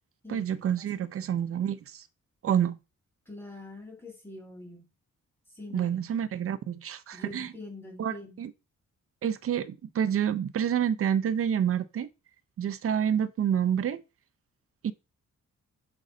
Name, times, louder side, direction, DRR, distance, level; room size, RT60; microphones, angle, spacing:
voice 1, 0.3-2.1 2.4-2.8 5.7-7.5 8.0-8.5 9.2-12.1 12.6-14.0 14.8-14.9, right 9 dB, 50° right, 0.6 m, -28 dB
voice 2, 3.3-4.9 5.5-5.9 7.1-8.4, left 2 dB, 10° left, 2.1 m, -44 dB
6.3 x 5.3 x 3.8 m
wide cardioid pair, 175°, 29 cm